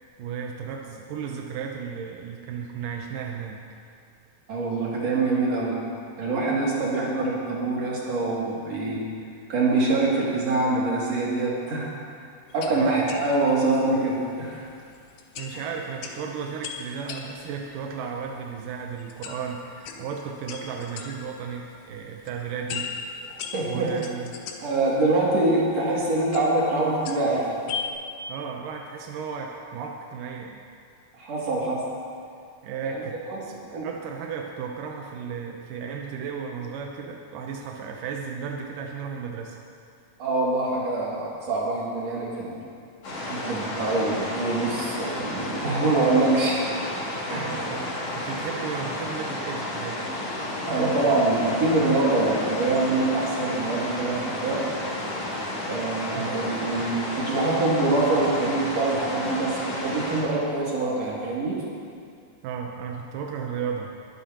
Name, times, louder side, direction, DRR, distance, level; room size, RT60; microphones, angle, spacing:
voice 1, 0.2-3.6 12.8-13.0 15.4-22.9 23.6-24.3 28.3-30.6 32.6-39.6 47.3-50.0 56.2-56.4 62.4-63.9, right 6 dB, 90° right, 1 dB, 2.4 m, -34 dB
voice 2, 4.5-5.8 6.2-9.0 9.5-11.9 12.5-14.7 15.5-15.6 23.3-23.9 24.6-27.5 31.2-31.8 32.9-33.0 33.3-33.4 33.7-33.9 40.2-42.6 43.3-46.6 47.3-47.5 50.7-54.6 55.7-61.6, right 2 dB, 55° right, -5 dB, 3.6 m, -24 dB
sound 1, 12.5-27.9, left 7 dB, 75° left, 2.3 m, -40 dB
sound 2, 43.0-60.2, left 1 dB, 50° left, 3.4 m, -32 dB
21.5 x 12.0 x 3.0 m, 2.3 s
omnidirectional pair, 3.7 m